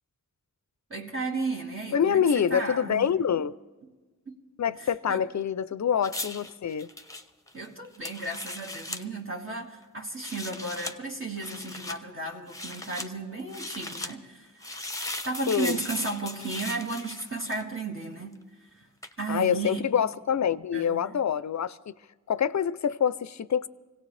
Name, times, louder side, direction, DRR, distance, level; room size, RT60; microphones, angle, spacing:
voice 1, 0.9-3.1 4.3-4.4 5.1-5.3 7.5-14.8 15.2-18.5 18.7-18.9 19.2-19.9 20.7-21.1, right 3 dB, 40° right, 1.7 m, -34 dB
voice 2, 1.9-3.6 4.6-6.9 15.5-15.8 19.3-21.9 22.3-23.7, left 8 dB, 60° left, 0.5 m, -26 dB
sound 1, 6.0-9.0 10.1-11.0 11.4-12.0 12.5-13.1 13.5-14.1 14.6-17.8 19.0-19.2, left 1 dB, 10° left, 0.9 m, -38 dB
25.0 x 17.0 x 3.3 m
wide cardioid pair, 55°, 33 cm